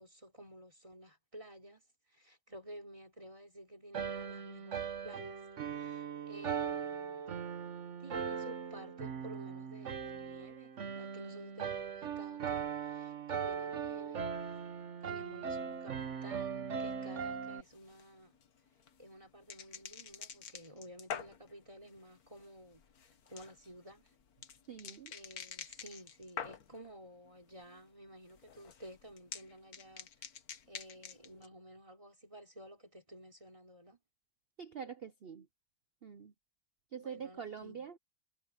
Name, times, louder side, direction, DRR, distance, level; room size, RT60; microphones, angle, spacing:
voice 1, 0.0-1.8 2.1-5.4 5.6-7.2 8.0-14.6 15.0-18.4 19.0-22.8 23.2-24.1 25.1-30.1 30.7-34.0 37.0-37.9, right 1 dB, 15° right, 3.8 m, -53 dB
sound 1, 3.9-17.6, right 7 dB, 45° right, 1.3 m, -39 dB
sound 2, 17.6-26.9 27.3-27.8 28.1-31.5, left 7 dB, 55° left, 1.6 m, -48 dB
voice 2, 24.7-25.1 34.6-35.5 36.0-36.3 36.9-38.0, right 7 dB, 85° right, 0.5 m, -45 dB
omnidirectional pair, 1.9 m